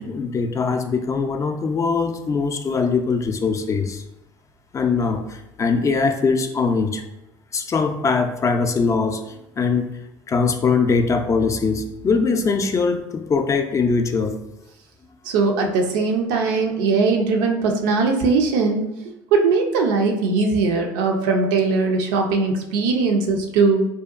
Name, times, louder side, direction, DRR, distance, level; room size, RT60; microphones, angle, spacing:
voice 1, 0.0-4.0 4.7-7.0 7.5-9.9 10.3-14.4, left 4 dB, 35° left, 6 dB, 0.3 m, -21 dB
voice 2, 15.3-18.9 19.3-23.9, right 4 dB, 85° right, 2 dB, 0.4 m, -20 dB
2.7 x 2.1 x 2.3 m, 0.89 s
supercardioid pair, 70°, 9 cm